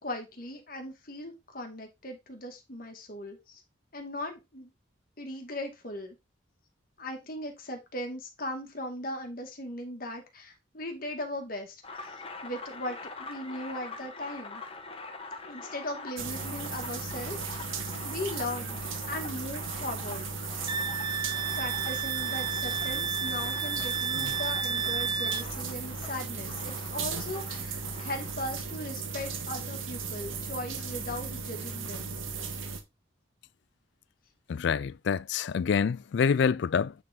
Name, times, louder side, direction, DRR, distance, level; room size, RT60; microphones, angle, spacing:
voice 1, 0.0-3.6 3.9-4.7 5.2-6.1 7.0-12.2 12.4-14.6 15.4-17.4 18.0-18.8 19.1-20.3 21.5-32.1, left 1 dB, 45° left, 1.8 m, -38 dB
sound 1, 11.8-28.3, left 3 dB, 30° left, 1.2 m, -44 dB
sound 2, 16.2-32.8, right 5 dB, 90° right, 1.5 m, -36 dB
Wind instrument woodwind instrument, 20.7-25.5, right 6 dB, 20° right, 0.4 m, -31 dB
voice 2, 34.5-36.9, left 6 dB, 60° left, 0.3 m, -26 dB
9.1 x 3.7 x 4.4 m
head